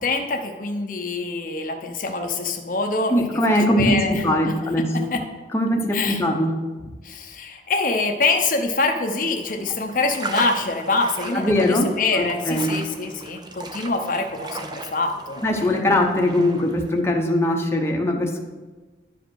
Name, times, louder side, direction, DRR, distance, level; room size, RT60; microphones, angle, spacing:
voice 1, 0.0-3.3 3.8-4.2 5.1-5.2 5.9-6.2 7.0-15.8, left 3 dB, 45° left, 3 dB, 0.7 m, -25 dB
voice 2, 3.1-5.1 5.5-6.6 11.3-12.8 15.4-18.4, left 1 dB, 15° left, 0 dB, 0.8 m, -21 dB
sound 1, 9.4-17.0, right 2 dB, 25° right, 0.6 m, -36 dB
10.5 x 5.1 x 6.3 m, 1.3 s
head